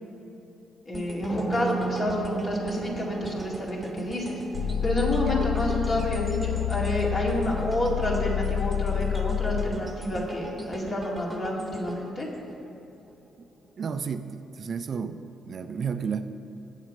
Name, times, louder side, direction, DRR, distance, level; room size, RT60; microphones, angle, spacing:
voice 1, 0.9-4.4 4.8-12.3, left 1 dB, 40° left, -2 dB, 2.0 m, -29 dB
sound 1, 0.9-13.1 13.5-13.7, right 1 dB, 15° right, 1.1 m, -39 dB
sound 2, 1.3-10.5, right 4 dB, 20° left, 1.2 m, -38 dB
sound 3, 4.5-9.8, left 10 dB, 90° left, 0.5 m, -28 dB
voice 2, 13.8-15.2 15.4-16.2, right 6 dB, 50° right, 9 dB, 0.4 m, -31 dB
8.3 x 7.3 x 5.2 m, 2.8 s
cardioid pair, 90°, 0 cm